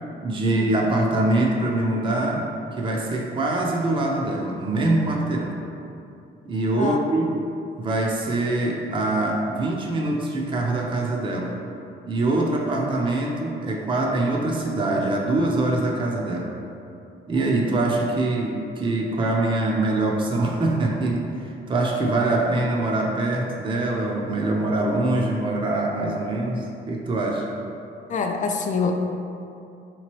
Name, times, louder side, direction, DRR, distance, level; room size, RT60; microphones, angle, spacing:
voice 1, 0.2-2.4 2.7-5.6 6.4-7.3 7.8-11.6 12.1-16.5 17.3-27.5, right 2 dB, 25° right, -1 dB, 0.5 m, -24 dB
voice 2, 28.1-28.9, left 5 dB, 40° left, 4 dB, 0.4 m, -25 dB
3.8 x 3.0 x 3.0 m, 2.6 s
cardioid pair, 90°, 20 cm